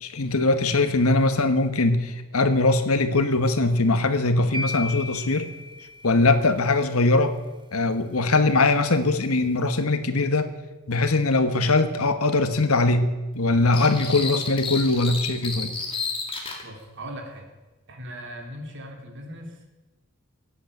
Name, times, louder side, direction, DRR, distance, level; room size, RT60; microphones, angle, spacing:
voice 1, 0.0-5.5 6.0-7.4 7.7-10.5 10.9-15.7, left 2 dB, 75° left, 10 dB, 1.3 m, -21 dB
sound 1, 4.5-6.7, left 2 dB, 20° right, 1.1 m, -35 dB
sound 2, 13.7-16.6, left 4 dB, 25° left, 2.3 m, -31 dB
voice 2, 16.6-17.5 17.9-19.7, equal, 55° right, 2 dB, 3.2 m, -39 dB
16.5 x 8.4 x 9.0 m, 1.2 s
head